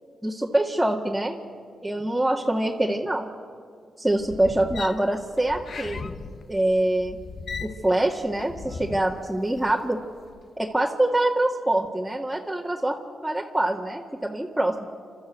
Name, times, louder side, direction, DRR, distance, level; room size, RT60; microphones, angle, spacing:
voice 1, 0.2-1.4 1.8-3.3 4.0-6.1 6.5-7.2 7.6-10.0 10.6-13.0 13.2-14.9, right 1 dB, 5° right, -3 dB, 1.9 m, -24 dB
sound 1, 4.1-9.8 10.2-10.5, left 5 dB, 60° left, 1.1 m, -38 dB
29.0 x 12.5 x 8.2 m, 2.2 s
supercardioid pair, 55°, 0 cm